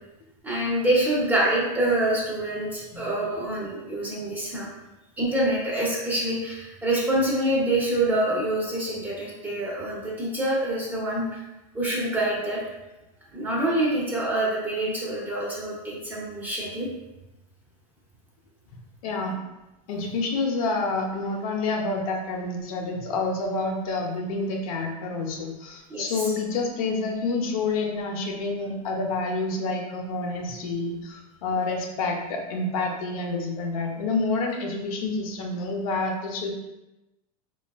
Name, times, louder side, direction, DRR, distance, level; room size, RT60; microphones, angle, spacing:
voice 1, 0.4-4.7 5.2-11.2 11.7-12.6 13.3-16.9 25.9-26.1, right 1 dB, 10° right, -6 dB, 0.5 m, -26 dB
voice 2, 19.0-19.4 19.9-36.5, left 3 dB, 70° left, 1 dB, 0.6 m, -28 dB
3.3 x 2.3 x 2.2 m, 1.0 s
supercardioid pair, 155°, 19 cm